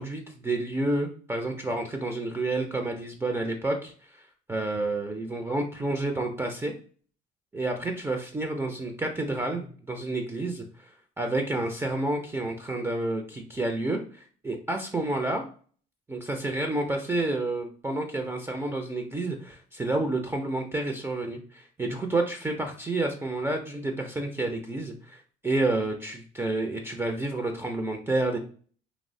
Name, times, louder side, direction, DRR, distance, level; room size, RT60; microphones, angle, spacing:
voice 1, 0.0-6.7 7.5-15.5 16.1-28.4, right 2 dB, 10° right, 3 dB, 0.4 m, -30 dB
2.9 x 2.0 x 2.6 m, 0.44 s
supercardioid pair, 75°, 21 cm